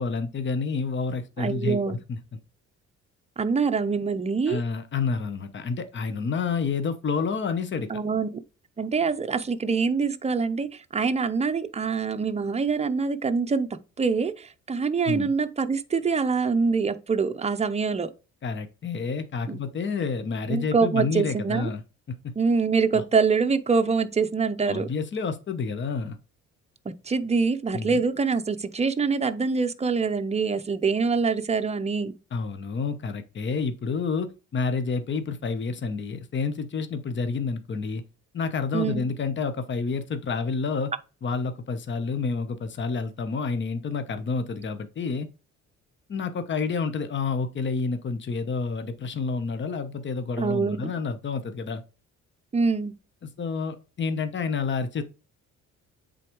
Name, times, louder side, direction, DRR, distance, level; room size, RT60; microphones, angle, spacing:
voice 1, 0.0-2.2 4.5-7.9 15.1-15.3 18.4-21.8 22.1-22.3 22.9-23.0 24.7-26.2 27.7-28.0 32.3-38.0 38.3-40.9 41.2-45.3 46.1-51.8 53.4-55.0, left 4 dB, 40° left, 0.9 m, -29 dB
voice 2, 1.4-2.0 3.4-4.6 7.9-8.4 8.8-13.7 14.0-18.1 19.5-19.6 20.5-21.7 22.4-24.9 26.9-32.1 38.7-39.0 50.4-50.9 52.5-52.9, right 5 dB, 20° right, 0.7 m, -25 dB
8.1 x 3.9 x 3.1 m
cardioid pair, 90°, 30 cm